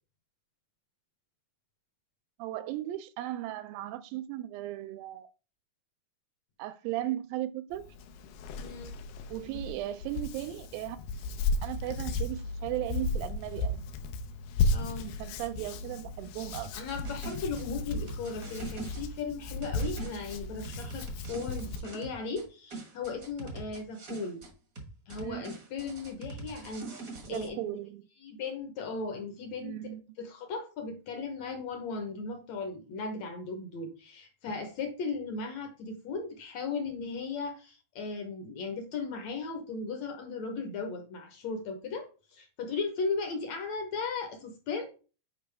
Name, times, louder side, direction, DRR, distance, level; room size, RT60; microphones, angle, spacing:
voice 1, 2.4-5.3 6.6-7.8 9.3-11.0 11.6-13.8 15.0-16.7 25.2-25.6 27.3-28.1 29.6-30.0, right 14 dB, 85° right, 2.3 m, -36 dB
Hands, 7.7-21.8, left 3 dB, 90° left, 2.6 m, -35 dB
voice 2, 8.6-8.9 14.7-15.2 16.8-24.4 25.1-27.8 28.2-29.8 30.2-44.9, left 4 dB, 65° left, 1.8 m, -37 dB
sound 1, 16.5-19.0 19.6-22.5 22.7-24.5 24.8-27.5, right 3 dB, 50° right, 1.0 m, -43 dB
8.7 x 5.0 x 3.4 m
omnidirectional pair, 4.1 m